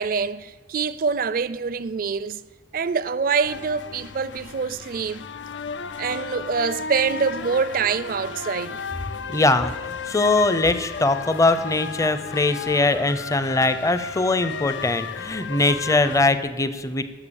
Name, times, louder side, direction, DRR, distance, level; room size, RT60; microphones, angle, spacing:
voice 1, 0.0-2.4 2.7-5.3 6.0-8.8, right 5 dB, 50° right, 0.4 m, -25 dB
sound 1, 3.4-16.2, left 5 dB, 90° left, 0.5 m, -34 dB
voice 2, 9.3-17.0, left 2 dB, 20° left, 0.6 m, -21 dB
12.0 x 6.8 x 7.0 m
head